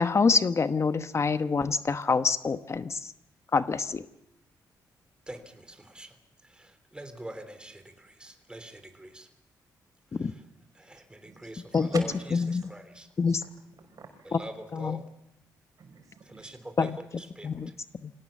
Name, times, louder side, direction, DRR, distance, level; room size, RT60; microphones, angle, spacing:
voice 1, 0.0-3.1 3.5-4.1 10.1-10.3 11.7-11.9 12.5-12.7 13.2-13.4 14.7-15.0 16.8-16.9 17.4-17.7 18.0-18.1, left 4 dB, 40° left, 11 dB, 1.0 m, -26 dB
voice 2, 5.3-6.2 6.4-9.3 10.1-10.4 10.7-12.1 12.5-13.1 14.3-15.1 16.2-17.8, right 1 dB, 15° right, 8 dB, 3.4 m, -45 dB
voice 3, 11.2-12.7 13.3-13.5 13.8-14.3 15.8-16.5, right 5 dB, 55° right, 6 dB, 5.6 m, -45 dB
26.0 x 18.0 x 7.3 m, 0.81 s
cardioid pair, 80°, 7 cm